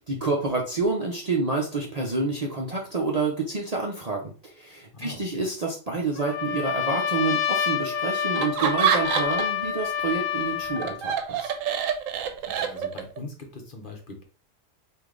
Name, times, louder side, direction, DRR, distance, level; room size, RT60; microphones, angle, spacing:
voice 1, 0.1-11.5, right 3 dB, 40° right, -1 dB, 0.6 m, -28 dB
voice 2, 4.9-5.4 12.5-14.2, left 2 dB, 45° left, 2 dB, 1.0 m, -41 dB
Trumpet, 6.2-11.0, left 8 dB, 75° left, 1.0 m, -28 dB
Laughter, 8.3-9.6 10.0-13.2, right 8 dB, 90° right, 1.0 m, -27 dB
4.9 x 2.6 x 3.7 m, 0.38 s
omnidirectional pair, 1.3 m